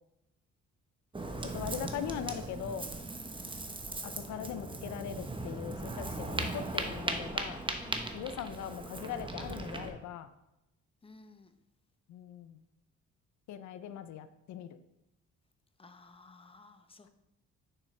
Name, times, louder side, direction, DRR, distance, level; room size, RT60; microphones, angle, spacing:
Ocean, 1.1-9.9, right 2 dB, 15° right, 0.8 m, -38 dB
voice 1, 1.4-2.9 4.0-7.6 8.1-10.3 12.1-12.6 13.5-14.8, left 9 dB, 70° left, 11 dB, 0.5 m, -40 dB
voice 2, 7.8-8.2 11.0-11.5 15.8-17.1, left 3 dB, 20° left, 8 dB, 0.7 m, -54 dB
6.3 x 6.3 x 3.2 m, 0.88 s
cardioid pair, 90°, 30 cm